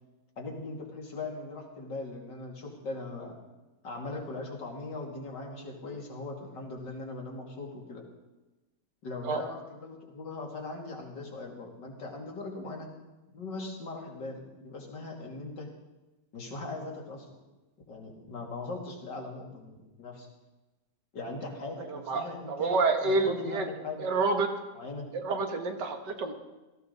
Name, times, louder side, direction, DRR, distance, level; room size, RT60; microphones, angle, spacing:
voice 1, 0.4-3.4 3.8-8.0 9.0-12.9 13.3-15.7 16.3-17.4 17.9-20.3 21.1-24.1 24.7-25.1, left 2 dB, 85° left, 0 dB, 3.2 m, -40 dB
voice 2, 22.1-23.7 24.0-24.5 25.1-26.3, right 3 dB, 75° right, 5 dB, 2.2 m, -28 dB
17.0 x 15.0 x 4.0 m, 1.1 s
omnidirectional pair, 1.9 m